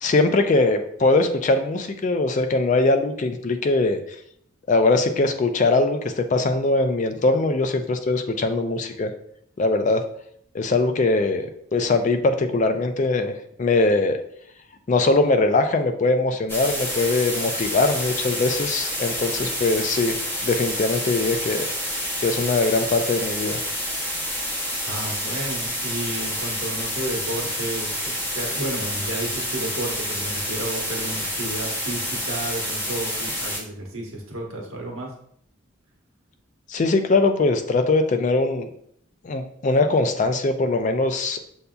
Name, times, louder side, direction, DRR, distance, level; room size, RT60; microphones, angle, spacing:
voice 1, 0.0-4.0 4.7-9.1 9.6-10.0 10.5-14.2 14.9-20.2 20.4-21.7 22.2-23.6 36.7-38.7 39.2-41.4, left 3 dB, 35° left, 7 dB, 0.3 m, -21 dB
sound 1, 16.5-33.6, equal, 10° left, 0.7 m, -28 dB
voice 2, 24.9-35.1, right 1 dB, 90° right, 0 dB, 1.1 m, -32 dB
6.7 x 2.7 x 2.3 m, 0.68 s
head